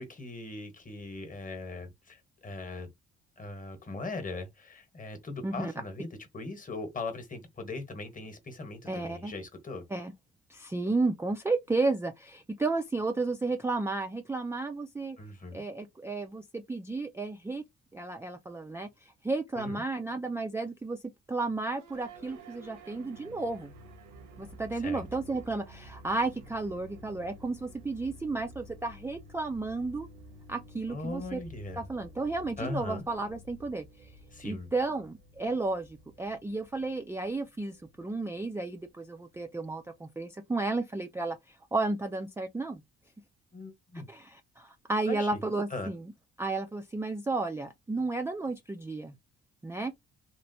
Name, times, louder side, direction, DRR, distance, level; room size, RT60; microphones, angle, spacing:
voice 1, 0.0-2.9 3.4-6.1 6.3-9.8 15.2-15.6 19.6-19.8 24.8-25.0 30.9-31.9 32.6-33.0 34.3-34.7 43.5-44.1 45.1-45.4 45.7-45.9, left 3 dB, 25° left, 1.1 m, -39 dB
voice 2, 8.9-9.3 9.9-10.1 10.5-15.2 15.5-17.6 17.9-21.0 21.3-23.7 24.4-30.1 30.5-31.4 31.8-34.2 34.4-42.8 44.1-46.1 46.4-49.2 49.6-49.9, right 3 dB, 10° right, 0.4 m, -33 dB
sound 1, 21.7-40.1, right 1 dB, 85° right, 1.0 m, -52 dB
3.1 x 2.5 x 2.7 m
cardioid pair, 90°, 30 cm